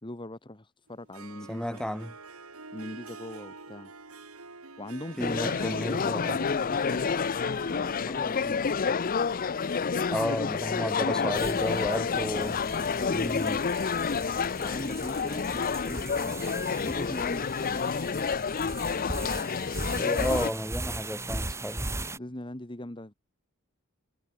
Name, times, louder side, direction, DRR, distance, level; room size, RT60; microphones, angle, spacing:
voice 1, 0.0-1.8 2.7-3.9 4.8-7.8 8.0-8.9 11.0-12.1 12.4-13.6 14.6-18.0 22.1-23.1, left 1 dB, 20° left, 1.5 m, -41 dB
Harp, 0.9-9.8, right 3 dB, 80° right, 3.4 m, -47 dB
voice 2, 1.5-2.1 5.2-6.4 10.1-12.6 13.1-13.6 19.9-21.9, equal, 5° left, 3.3 m, -32 dB
sound 1, 5.2-20.5, left 5 dB, 40° left, 0.5 m, -29 dB
sound 2, 11.3-22.2, right 2 dB, 15° right, 0.9 m, -38 dB
head